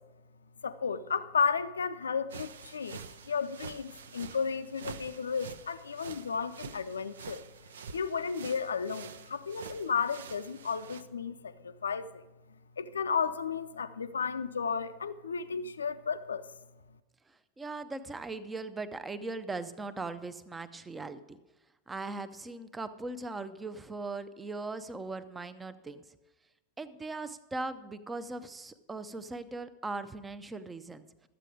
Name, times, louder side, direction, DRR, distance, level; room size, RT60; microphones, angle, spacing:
voice 1, 0.6-7.4 7.9-12.2 12.8-16.5, left 6 dB, 70° left, 12 dB, 0.5 m, -33 dB
sound 1, 2.3-11.0, right 6 dB, 65° right, 0.5 m, -47 dB
voice 2, 17.6-21.4 21.9-26.0 26.8-31.0, right 3 dB, 10° right, 12 dB, 0.6 m, -39 dB
12.0 x 8.3 x 4.8 m, 1.1 s
figure-of-eight pair, 90°, 0 cm